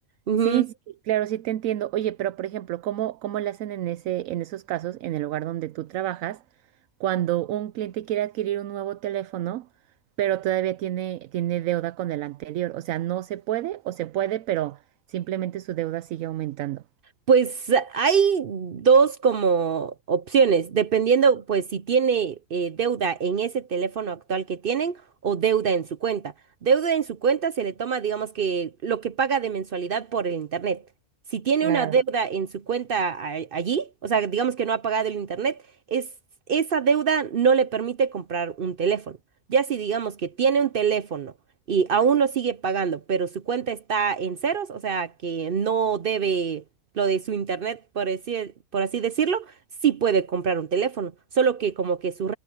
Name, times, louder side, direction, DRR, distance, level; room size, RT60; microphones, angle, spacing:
voice 1, 0.3-0.6 17.3-26.3 26.6-30.8 31.3-35.6 35.9-36.1 36.5-39.2 39.5-41.3 41.7-46.6 47.0-49.5 49.8-52.3, right 6 dB, 55° right, 0.7 m, -24 dB
voice 2, 1.1-6.4 7.0-9.7 10.2-14.8 15.1-16.8 31.6-32.0, right 13 dB, 75° right, 1.0 m, -28 dB
omnidirectional pair, 1.5 m